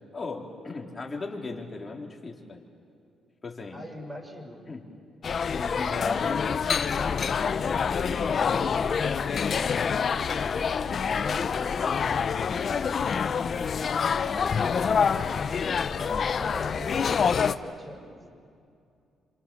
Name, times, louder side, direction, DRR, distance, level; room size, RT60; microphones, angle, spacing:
voice 1, 0.1-2.6 3.4-3.8 4.7-4.9 5.5-9.7 10.5-13.3 13.8-16.3 16.6-16.7 17.0-17.2, left 3 dB, 30° left, 0 dB, 4.0 m, -38 dB
voice 2, 3.7-4.7 16.3-18.2, equal, 15° right, 1 dB, 6.6 m, -41 dB
sound 1, 5.2-17.5, left 6 dB, 50° left, 0.9 m, -26 dB
28.5 x 27.0 x 7.2 m, 2.4 s
cardioid pair, 90°, 0 cm